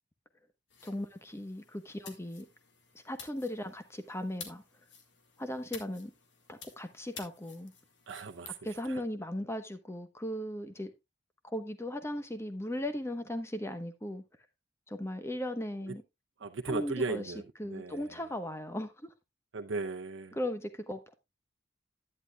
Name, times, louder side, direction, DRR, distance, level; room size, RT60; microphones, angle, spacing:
sound 1, 0.7-8.6, left 6 dB, 70° left, 2.0 m, -52 dB
voice 1, 0.8-2.5 2.9-4.6 5.4-6.1 6.5-7.7 8.6-10.9 11.4-14.2 14.9-16.0 16.6-17.3 17.6-19.1 20.3-21.1, left 1 dB, 15° left, 1.1 m, -37 dB
voice 2, 8.1-8.6 8.9-9.0 16.4-17.4 17.7-18.0 19.5-20.4, right 3 dB, 90° right, 0.7 m, -36 dB
11.0 x 9.8 x 2.3 m
head